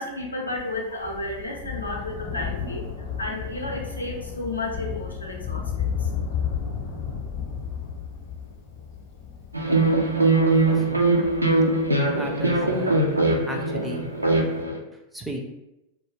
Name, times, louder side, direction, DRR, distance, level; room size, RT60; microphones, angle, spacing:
voice 1, 0.0-6.1, left 2 dB, 85° left, -1 dB, 0.5 m, -32 dB
Thunder, 0.6-13.4 14.3-14.4, left 7 dB, 40° left, 0.7 m, -33 dB
sound 1, 9.5-14.8, right 2 dB, 85° right, 0.3 m, -21 dB
voice 2, 10.6-11.0 12.1-12.9 13.4-14.1 15.1-15.4, right 1 dB, 5° right, 1 dB, 0.4 m, -34 dB
2.2 x 2.2 x 3.2 m, 0.91 s
figure-of-eight pair, 90°, 0 cm